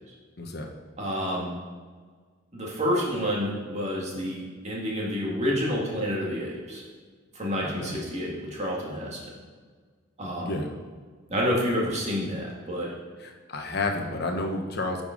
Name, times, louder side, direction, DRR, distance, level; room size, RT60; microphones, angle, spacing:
voice 1, 0.4-0.7 7.6-8.0 10.4-10.7 13.2-15.0, left 2 dB, 55° left, 2 dB, 1.0 m, -31 dB
voice 2, 1.0-1.5 2.5-6.8 7.3-9.2 10.2-10.6 11.3-12.9, equal, 35° right, -4 dB, 2.1 m, -29 dB
9.9 x 5.4 x 5.1 m, 1.5 s
head